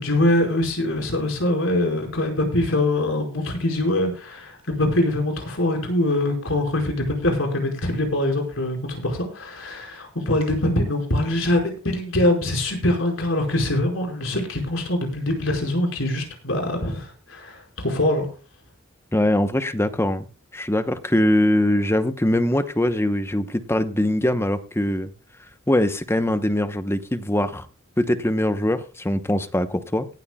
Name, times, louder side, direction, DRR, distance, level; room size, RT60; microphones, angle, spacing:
voice 1, 0.0-18.3, left 1 dB, 70° left, 2 dB, 5.1 m, -23 dB
voice 2, 19.1-20.3 20.5-25.1 25.7-27.7 28.0-30.1, left 1 dB, 10° left, 10 dB, 0.9 m, -22 dB
18.0 x 13.0 x 2.3 m, 0.35 s
head